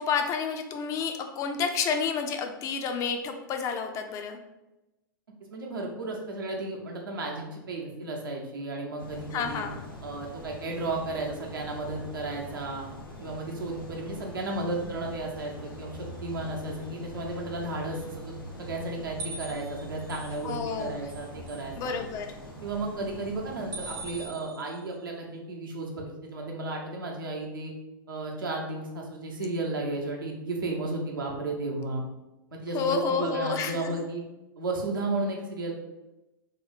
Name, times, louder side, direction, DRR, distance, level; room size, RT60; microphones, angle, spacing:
voice 1, 0.0-4.4 9.3-9.8 20.4-21.0 21.8-22.4 32.7-34.1, left 6 dB, 30° left, 6 dB, 0.3 m, -30 dB
voice 2, 5.5-9.6 10.0-12.8 13.2-22.0 22.6-27.7 28.1-32.0 32.5-34.2 34.6-35.7, right 2 dB, 75° right, -1 dB, 0.8 m, -33 dB
sound 1, 9.0-24.3, right 1 dB, 90° left, 0.8 m, -43 dB
sound 2, 19.2-20.8 21.1-21.6 23.7-24.9, right 2 dB, 35° right, 0.5 m, -41 dB
2.9 x 2.1 x 4.1 m, 1.0 s
figure-of-eight pair, 95°, 11 cm